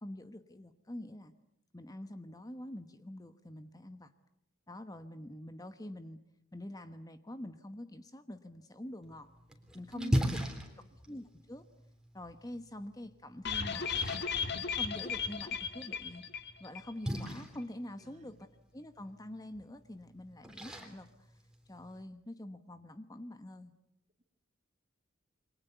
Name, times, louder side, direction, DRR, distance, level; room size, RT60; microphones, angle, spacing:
voice 1, 0.0-1.3 1.7-4.1 4.7-6.2 6.5-9.3 9.7-10.4 11.1-11.6 12.1-13.9 14.7-16.2 16.6-18.5 18.7-21.3 21.7-23.7, left 1 dB, 15° left, 10 dB, 1.1 m, -46 dB
Splash splatter, 9.0-22.0, equal, 5° right, 3.5 m, -41 dB
voice 2, 9.9-10.8 18.0-18.4, right 2 dB, 35° right, 8 dB, 2.3 m, -46 dB
sound 1, 13.5-16.9 17.2-17.3 17.6-17.7, left 6 dB, 50° left, 1.8 m, -36 dB
28.5 x 24.0 x 8.1 m, 0.78 s
head